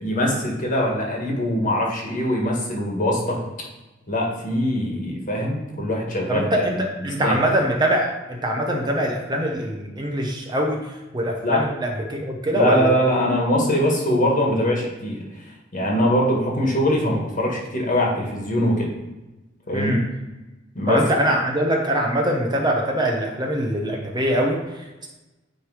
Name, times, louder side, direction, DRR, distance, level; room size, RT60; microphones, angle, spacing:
voice 1, 0.0-3.4 4.1-6.7 7.2-7.4 11.4-11.6 12.5-15.2 15.7-18.9 19.7-20.0 20.7-21.0, equal, 45° left, -1 dB, 1.6 m, -22 dB
voice 2, 6.3-12.9 19.7-20.0 20.9-25.1, equal, 20° right, 1 dB, 0.8 m, -23 dB
9.2 x 3.3 x 4.8 m, 1.1 s
head